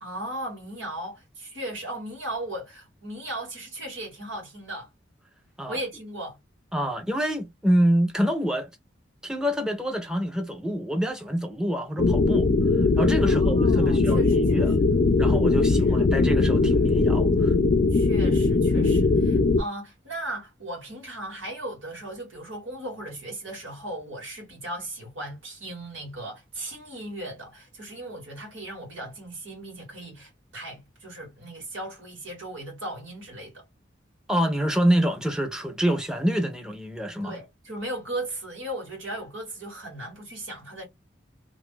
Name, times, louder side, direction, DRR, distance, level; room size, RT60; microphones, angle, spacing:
voice 1, 0.0-4.9 5.7-6.4 13.2-14.8 15.7-16.0 17.9-33.6 37.2-40.9, right 1 dB, 90° right, 1.6 m, -37 dB
voice 2, 6.7-8.7 9.2-12.5 13.0-14.8 15.2-17.5 34.3-37.4, equal, 5° right, 0.5 m, -26 dB
sound 1, 12.0-19.6, left 3 dB, 45° left, 0.4 m, -20 dB
2.6 x 2.4 x 3.6 m
head